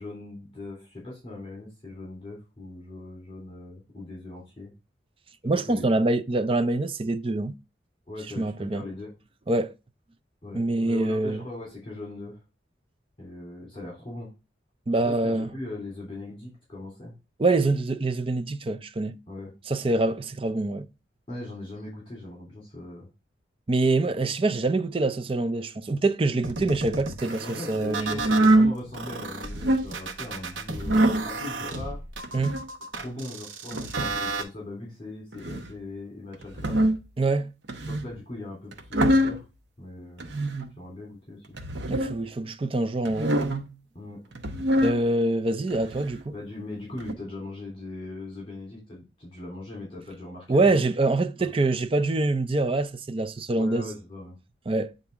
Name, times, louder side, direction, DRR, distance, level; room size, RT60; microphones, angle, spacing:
voice 1, 0.0-4.7 5.4-6.1 8.1-9.1 10.4-12.4 13.2-14.3 15.0-17.1 19.3-19.5 21.3-23.1 27.2-32.0 32.9-36.8 37.9-39.4 39.8-40.3 40.8-41.4 43.9-44.2 46.3-50.8 51.4-51.5 53.5-54.4, left 2 dB, 30° left, 3.2 m, -40 dB
voice 2, 5.4-7.5 8.4-8.8 9.5-9.7 10.5-11.4 14.9-15.5 17.4-19.2 19.7-20.9 23.7-28.2 32.3-32.6 37.2-37.5 41.9-43.4 44.8-46.3 50.5-53.9 54.7-54.9, right 2 dB, 30° right, 0.4 m, -25 dB
sound 1, 26.4-28.5 28.9-34.4, right 3 dB, 85° right, 1.2 m, -34 dB
sound 2, 28.1-28.7 29.4-29.9 30.8-31.3 32.2-32.7 33.7-34.2 35.3-35.7 36.4-37.1 37.7-38.1 38.7-39.4 40.2-40.7 41.5-42.1 43.0-43.7 44.3-45.0 45.7-46.2 47.0-47.1, right 1 dB, 70° right, 0.9 m, -24 dB
8.7 x 3.9 x 3.5 m
head